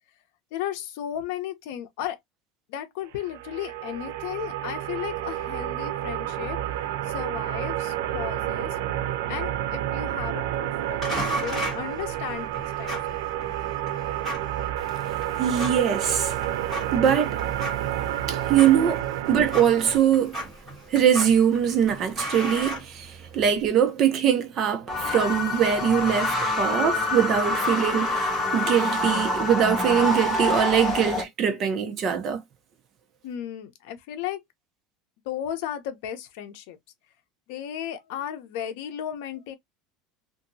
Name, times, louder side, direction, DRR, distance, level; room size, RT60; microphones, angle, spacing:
voice 1, 0.5-2.2 2.7-6.6 7.1-13.4 18.6-18.7 33.2-34.4 35.3-36.8 37.5-39.5, left 10 dB, 65° left, 0.7 m, -35 dB
sound 1, 3.2-20.0, right 12 dB, 80° right, 0.4 m, -30 dB
sound 2, 11.0-23.5, right 1 dB, 5° right, 1.7 m, -36 dB
voice 2, 15.4-16.4 16.9-17.4 18.3-20.4 20.9-32.4, right 8 dB, 30° right, 0.7 m, -22 dB
sound 3, 24.9-31.2, left 2 dB, 10° left, 0.8 m, -26 dB
2.8 x 2.6 x 2.6 m
cardioid pair, 170°, 0 cm